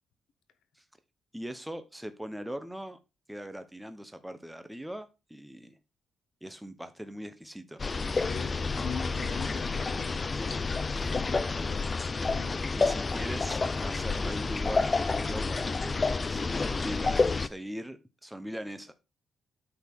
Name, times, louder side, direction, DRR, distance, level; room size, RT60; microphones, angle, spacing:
voice 1, 1.3-3.0 3.3-5.8 6.4-7.8 12.8-16.0 16.3-18.9, equal, 5° right, 0.8 m, -40 dB
sound 1, 7.8-17.5, left 4 dB, 30° left, 0.5 m, -29 dB
voice 2, 8.1-11.9 12.3-12.9, left 7 dB, 85° left, 1.1 m, -43 dB
8.7 x 4.2 x 4.5 m
cardioid pair, 95°, 0 cm